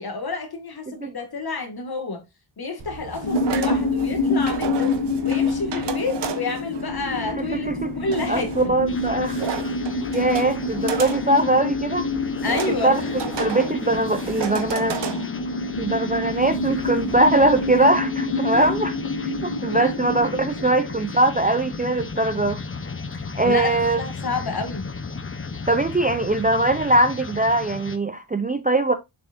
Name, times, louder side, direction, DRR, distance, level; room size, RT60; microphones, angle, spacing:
voice 1, 0.0-2.2 2.6-4.9 5.2-7.7 8.0-8.7 12.4-13.1 18.5-18.7 19.7-19.9 23.1-24.8, left 3 dB, 50° left, 1.9 m, -29 dB
sound 1, 2.8-17.8, right 7 dB, 60° right, 1.1 m, -34 dB
sound 2, 3.2-21.3, left 3 dB, 85° left, 1.6 m, -27 dB
voice 2, 7.2-7.9 8.3-9.5 10.1-12.1 12.7-13.0 13.4-15.0 15.8-18.9 19.2-22.6 23.3-24.0 25.7-28.9, right 2 dB, 20° right, 0.4 m, -21 dB
sound 3, 8.9-28.0, left 4 dB, 25° left, 0.7 m, -35 dB
7.1 x 5.9 x 2.5 m
wide cardioid pair, 130°, 48 cm